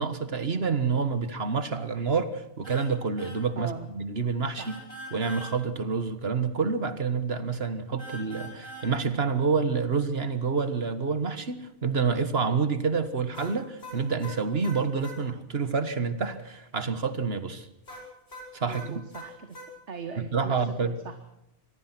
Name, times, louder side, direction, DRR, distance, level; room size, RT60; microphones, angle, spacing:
voice 1, 0.0-4.7 5.1-17.7 18.5-19.0 20.3-20.9, right 5 dB, 60° right, 11 dB, 1.7 m, -28 dB
sound 1, 2.6-2.9 3.2-3.4 4.6-5.5 8.0-8.9 13.3-15.2 17.9-19.7, equal, 65° left, 6.0 m, -42 dB
voice 2, 3.6-3.9 4.5-4.8 18.6-19.6 19.9-21.1, right 5 dB, 75° right, 7 dB, 1.8 m, -40 dB
25.5 x 19.0 x 6.0 m, 0.83 s
omnidirectional pair, 1.2 m